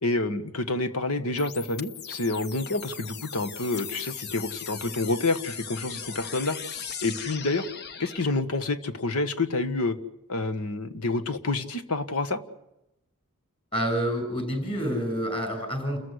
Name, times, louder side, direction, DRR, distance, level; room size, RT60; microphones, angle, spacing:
voice 1, 0.0-6.6 7.0-7.7 8.0-10.0 10.3-12.4, left 2 dB, 85° left, 10 dB, 1.5 m, -28 dB
sound 1, 1.4-8.4, left 7 dB, 50° left, 1.1 m, -39 dB
voice 2, 13.7-16.0, equal, 25° left, 5 dB, 6.8 m, -28 dB
29.5 x 14.5 x 9.9 m, 0.87 s
head